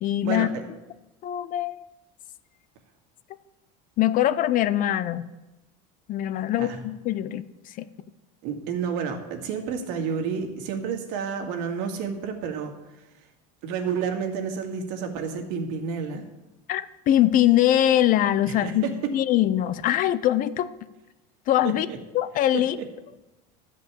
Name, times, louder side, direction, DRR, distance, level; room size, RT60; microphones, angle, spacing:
voice 1, 0.0-0.5 1.2-1.8 4.0-5.3 6.1-7.9 16.7-18.8 19.1-20.7 21.5-21.9 22.1-22.8, left 12 dB, 40° left, 15 dB, 0.5 m, -22 dB
voice 2, 8.4-12.7 13.6-16.2 18.5-18.9 21.6-22.0 22.5-22.6, right 6 dB, 70° right, 4 dB, 2.1 m, -30 dB
12.5 x 5.4 x 8.3 m, 1.0 s
supercardioid pair, 135°, 21 cm